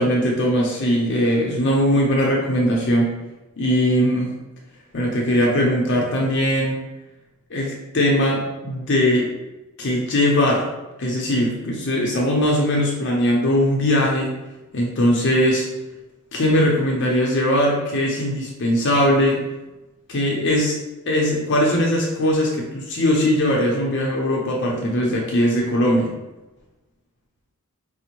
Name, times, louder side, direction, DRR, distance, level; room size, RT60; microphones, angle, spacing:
voice 1, 0.0-3.1 3.6-4.3 4.9-6.8 7.5-9.3 9.8-10.6 11.0-14.3 14.7-15.7 16.3-19.4 20.1-20.8 21.1-26.1, equal, 55° left, -2 dB, 0.6 m, -20 dB
5.0 x 2.0 x 2.9 m, 1.0 s
head